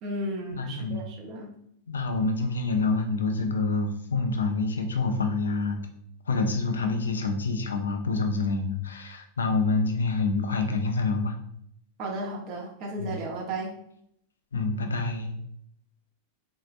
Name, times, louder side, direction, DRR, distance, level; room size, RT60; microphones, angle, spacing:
voice 1, 0.0-1.5 12.0-13.7, right 1 dB, 40° right, -1 dB, 0.8 m, -34 dB
voice 2, 0.5-1.0 1.9-5.8 6.3-11.3 13.0-13.2 14.5-15.4, left 3 dB, 70° left, 5 dB, 0.5 m, -27 dB
4.0 x 2.7 x 2.4 m, 0.70 s
figure-of-eight pair, 90°, 0 cm